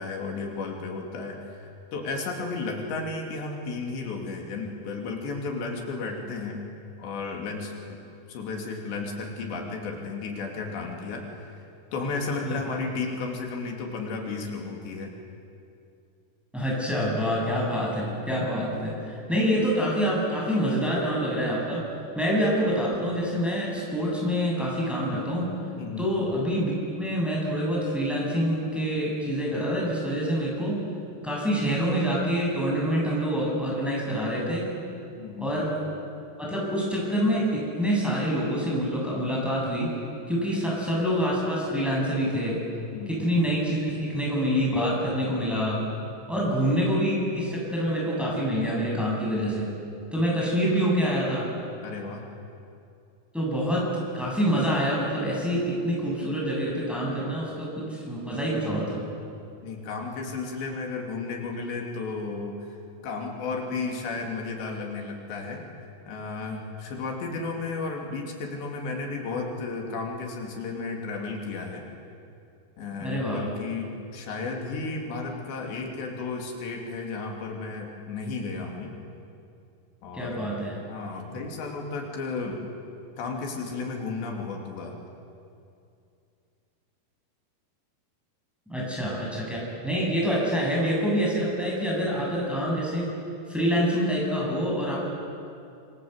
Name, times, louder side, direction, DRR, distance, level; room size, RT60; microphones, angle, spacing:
voice 1, 0.0-6.6 7.0-8.0 8.3-11.6 11.9-15.1 25.8-26.1 35.2-35.5 42.9-43.1 51.8-52.3 59.6-62.8 63.0-65.7 66.1-71.8 72.8-78.9 80.0-80.4 80.9-82.6 83.2-85.0, left 4 dB, 90° left, 1 dB, 5.1 m, -33 dB
voice 2, 16.5-21.9 22.2-25.5 26.0-26.7 27.0-30.8 31.2-34.7 35.4-35.7 36.4-39.9 40.3-42.6 43.1-45.8 46.3-49.7 50.1-51.5 53.3-53.9 54.1-59.0 73.0-73.5 80.1-80.8 88.7-89.6 89.8-93.1 93.5-95.0, equal, ahead, -4 dB, 7.4 m, -26 dB
26.5 x 25.0 x 8.2 m, 2.5 s
omnidirectional pair, 4.8 m